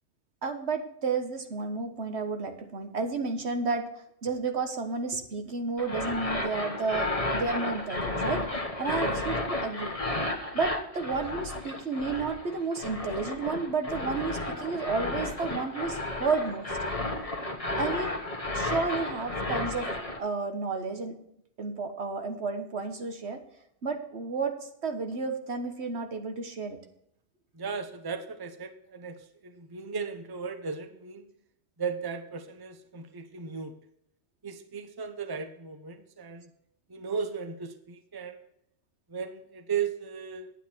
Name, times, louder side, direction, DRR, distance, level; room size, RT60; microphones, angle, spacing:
voice 1, 0.4-3.9 4.2-8.4 8.8-10.0 10.5-16.8 17.8-18.1 18.5-19.9 20.2-21.2 21.6-23.4 23.8-26.8, right 4 dB, 70° right, 6 dB, 1.5 m, -32 dB
sound 1, 5.8-20.2, left 2 dB, 30° left, 1.4 m, -32 dB
voice 2, 27.5-31.3 31.8-33.7 34.4-36.5 36.9-38.4 39.1-40.5, right 6 dB, 20° right, 8 dB, 0.8 m, -36 dB
10.0 x 9.2 x 4.5 m, 0.74 s
omnidirectional pair, 1.2 m